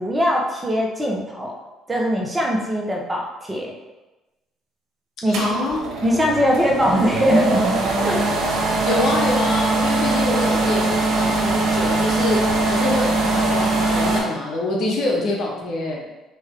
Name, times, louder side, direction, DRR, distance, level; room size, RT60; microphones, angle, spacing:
voice 1, 0.0-1.5 1.9-3.7 5.2-5.5 6.0-8.2, equal, 20° right, -2 dB, 1.2 m, -21 dB
voice 2, 5.3-5.8 8.9-12.4 12.7-16.0, left 2 dB, 60° left, -1 dB, 1.1 m, -25 dB
sound 1, 5.3-14.2, right 2 dB, 60° right, 1.4 m, -21 dB
4.7 x 3.0 x 3.7 m, 1.1 s
hypercardioid pair, 60°, 0 cm